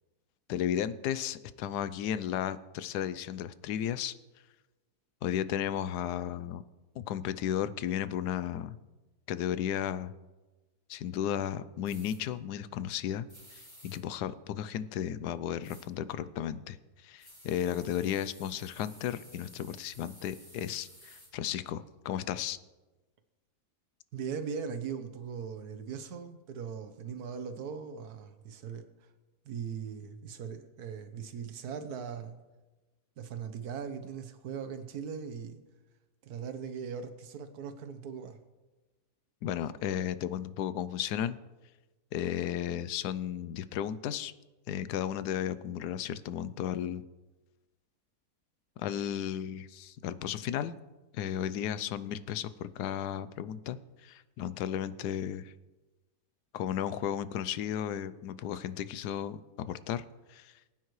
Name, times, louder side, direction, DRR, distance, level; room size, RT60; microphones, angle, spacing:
voice 1, 0.5-4.1 5.2-6.6 6.9-8.8 9.3-10.1 10.9-13.3 13.5-16.8 17.0-22.6 39.4-41.4 42.1-44.3 44.7-47.0 48.8-50.8 51.1-55.5 56.5-60.0 60.3-60.5, left 10 dB, 85° left, 15 dB, 1.2 m, -34 dB
sound 1, 11.8-12.2 13.3-14.0 15.6-15.9 17.2-21.3, equal, 15° left, 3.9 m, -54 dB
voice 2, 24.1-28.8 29.4-32.4 33.2-35.6 36.2-38.4, right 6 dB, 75° right, 8 dB, 1.4 m, -39 dB
20.0 x 9.3 x 3.1 m, 1.2 s
omnidirectional pair, 1.7 m